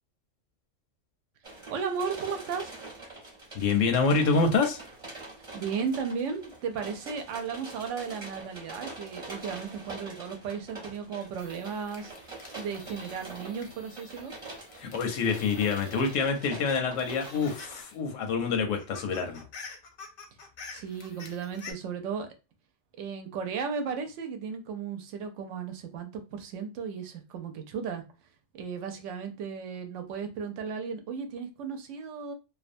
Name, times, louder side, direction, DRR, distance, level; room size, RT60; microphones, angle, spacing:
sound 1, 1.4-17.8, right 2 dB, 30° right, 0.8 m, -45 dB
voice 1, 1.7-2.7 5.5-12.1 12.6-14.3 20.7-22.3 23.0-28.0 28.5-32.3, right 6 dB, 75° right, 6 dB, 0.9 m, -35 dB
voice 2, 3.5-4.8 14.8-19.4, left 4 dB, 85° left, 4 dB, 1.0 m, -26 dB
sound 2, 11.4-16.3 16.7-18.0 18.3-18.4 18.6-21.7, left 4 dB, 60° left, 0.7 m, -48 dB
2.5 x 2.2 x 2.5 m, 0.29 s
omnidirectional pair, 1.3 m